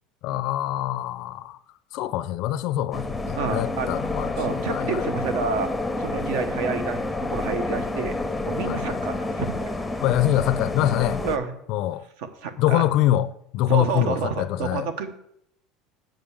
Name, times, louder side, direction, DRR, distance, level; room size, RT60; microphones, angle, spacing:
voice 1, 0.2-1.6 1.9-5.1 8.6-9.0 10.0-11.2 11.7-12.0 12.6-13.3 13.5-14.9, left 13 dB, 55° left, 0.4 m, -24 dB
sound 1, 2.9-11.4, left 2 dB, 5° left, 0.6 m, -29 dB
voice 2, 3.4-3.9 4.4-5.7 6.0-8.2 8.5-9.6 11.2-11.5 12.4-12.8 13.7-15.1, right 5 dB, 80° right, 1.1 m, -29 dB
7.7 x 5.1 x 7.0 m
cardioid pair, 150°, 0 cm